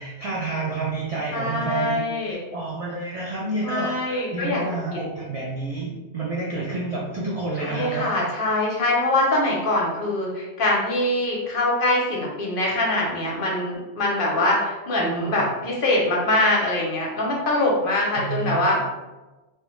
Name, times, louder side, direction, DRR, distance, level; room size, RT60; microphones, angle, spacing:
voice 1, 0.0-2.0 2.5-8.1 15.0-15.5 18.1-18.8, right 3 dB, 60° right, -6 dB, 0.3 m, -29 dB
voice 2, 1.3-2.4 3.6-4.6 7.6-18.8, left 1 dB, 60° left, -2 dB, 0.7 m, -23 dB
2.2 x 2.1 x 2.9 m, 1.1 s
omnidirectional pair, 1.2 m